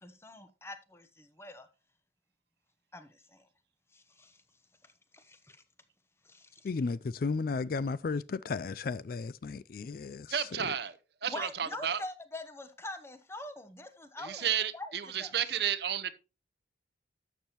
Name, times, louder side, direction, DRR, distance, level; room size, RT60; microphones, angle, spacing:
voice 1, 0.0-1.7 2.9-3.4 3.9-4.4 4.8-5.6 6.2-6.7 11.3-14.5 14.7-15.3, left 2 dB, 15° left, 0.9 m, -44 dB
voice 2, 6.6-10.3, left 4 dB, 50° left, 0.3 m, -34 dB
voice 3, 10.3-12.0 14.2-16.1, right 9 dB, 60° right, 0.7 m, -32 dB
12.0 x 7.2 x 3.0 m
head